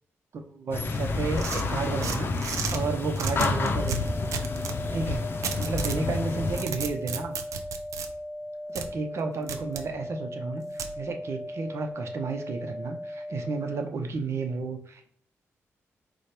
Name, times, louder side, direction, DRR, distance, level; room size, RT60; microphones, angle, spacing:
voice 1, 0.3-2.3 2.7-4.2 4.9-5.2 5.6-7.4 8.7-10.6 11.0-15.1, right 4 dB, 60° right, 5 dB, 0.8 m, -32 dB
sound 1, 0.7-6.7, left 3 dB, 45° left, 0.6 m, -29 dB
sound 2, 1.4-2.8 3.2-4.8 5.4-6.0 6.4-8.1 8.8-8.9 9.5-9.9 10.8-10.9, right 6 dB, 85° right, 0.6 m, -33 dB
sound 3, 3.8-13.8, left 1 dB, 10° right, 0.3 m, -38 dB
4.9 x 2.3 x 4.4 m, 0.62 s
cardioid pair, 105°, 5 cm